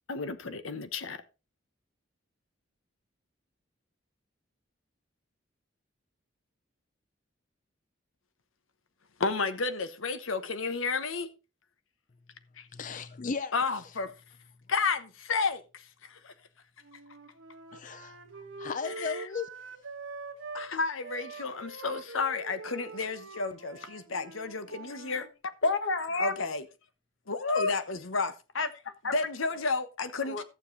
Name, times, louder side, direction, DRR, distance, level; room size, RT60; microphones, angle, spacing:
voice 1, 0.1-1.2 9.2-11.3 12.6-12.7 13.5-14.1 14.7-16.3 18.8-19.2 20.5-25.3 26.2-26.6 27.3-28.3 29.1-30.4, left 4 dB, 90° left, 1.1 m, -32 dB
voice 2, 12.7-13.5 17.7-19.5, left 5 dB, 40° left, 0.5 m, -36 dB
Wind instrument woodwind instrument, 16.8-20.7 21.0-25.3, right 4 dB, 70° right, 1.6 m, -44 dB
voice 3, 25.6-26.4 27.4-27.7 28.5-29.1 30.0-30.4, left 3 dB, 75° left, 1.3 m, -30 dB
14.5 x 7.1 x 4.0 m
head